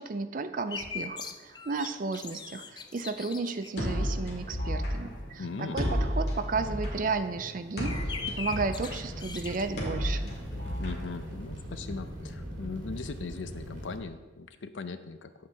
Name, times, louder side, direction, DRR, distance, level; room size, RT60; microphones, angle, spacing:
voice 1, 0.0-10.4, right 4 dB, 45° right, 11 dB, 0.4 m, -33 dB
sound 1, 0.7-10.8 11.1-11.2 11.4-12.3, left 5 dB, 25° left, 0.3 m, -42 dB
sound 2, 3.8-11.7, equal, 55° left, 2.1 m, -33 dB
voice 2, 5.4-5.8 10.8-15.3, left 4 dB, 85° left, 10 dB, 0.6 m, -39 dB
sound 3, 8.0-14.0, equal, 85° right, 2.1 m, -41 dB
9.2 x 7.7 x 3.5 m, 1.2 s
head